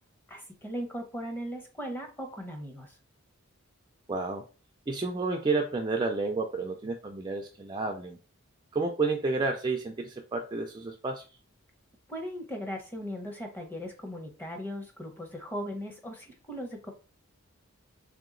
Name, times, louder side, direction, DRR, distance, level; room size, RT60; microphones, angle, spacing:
voice 1, 0.3-3.0 12.1-16.9, equal, 10° left, 2 dB, 0.7 m, -38 dB
voice 2, 4.1-4.5 4.9-8.2 8.7-11.4, right 3 dB, 20° right, 2 dB, 0.3 m, -30 dB
3.4 x 2.9 x 3.8 m, 0.34 s
head